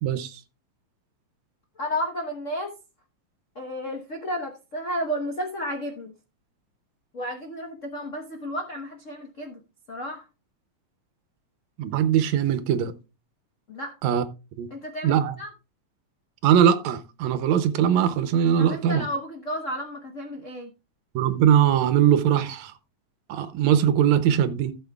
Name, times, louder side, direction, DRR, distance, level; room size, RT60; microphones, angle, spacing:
voice 1, 0.0-0.4 11.8-12.9 14.0-14.2 14.6-14.7 15.0-15.4 16.4-19.1 21.2-22.7 23.3-24.8, right 9 dB, 75° right, 2.0 m, -21 dB
voice 2, 1.8-2.7 3.5-6.1 7.1-9.6 9.9-10.2 13.7-13.9 14.7-15.5 18.6-20.7, equal, 70° left, 0.7 m, -32 dB
15.5 x 7.2 x 2.3 m
omnidirectional pair, 3.3 m